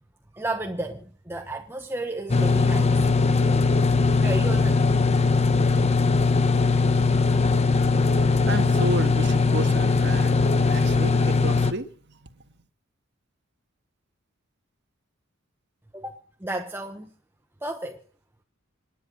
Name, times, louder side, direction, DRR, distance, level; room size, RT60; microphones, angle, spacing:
voice 1, 0.3-5.2 5.6-5.9 15.9-17.1 17.6-18.0, right 2 dB, 10° right, 1.1 m, -34 dB
sound 1, 2.3-11.7, left 4 dB, 30° left, 1.0 m, -20 dB
voice 2, 8.0-12.4, right 2 dB, 55° right, 1.7 m, -33 dB
27.0 x 10.0 x 5.2 m
head